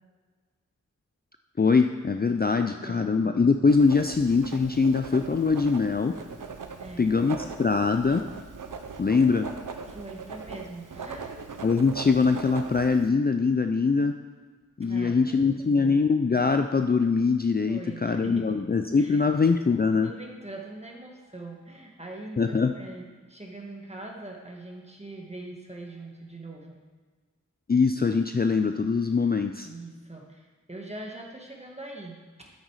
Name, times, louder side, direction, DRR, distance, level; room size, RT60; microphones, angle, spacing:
voice 1, 1.6-6.1 7.0-8.2 9.0-9.5 11.6-14.1 14.8-20.1 22.4-22.7 27.7-29.7, left 4 dB, 30° left, 7 dB, 0.5 m, -23 dB
voice 2, 2.3-3.0 6.8-7.1 9.9-11.5 14.8-16.0 17.7-18.6 19.0-19.2 19.9-26.8 29.6-32.5, right 2 dB, 20° right, -1 dB, 1.8 m, -42 dB
Writing, 3.7-13.1, right 5 dB, 75° right, 0.8 m, -40 dB
8.9 x 8.2 x 4.8 m, 1.4 s
cardioid pair, 45°, 32 cm